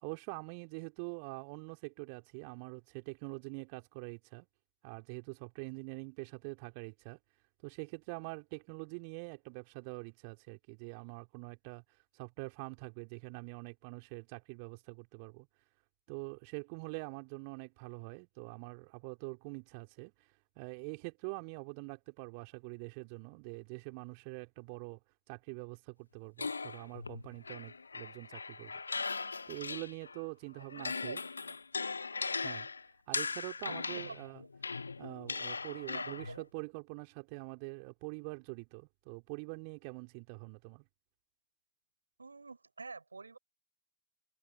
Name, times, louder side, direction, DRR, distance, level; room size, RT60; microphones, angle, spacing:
voice 1, 0.0-4.5 4.8-7.2 7.6-11.8 12.1-15.5 16.1-25.0 25.3-28.8 29.5-31.2 32.4-32.7 33.1-34.4 35.0-40.8, right 36 dB, 45° right, 3.5 m, -45 dB
sound 1, 26.4-30.2 30.6-36.4, left 4 dB, 75° left, 1.4 m, -39 dB
voice 2, 30.8-31.6 33.9-34.5 35.9-36.5 42.2-43.4, right 4 dB, 80° right, 5.0 m, -48 dB
open air
figure-of-eight pair, 90°, 0 cm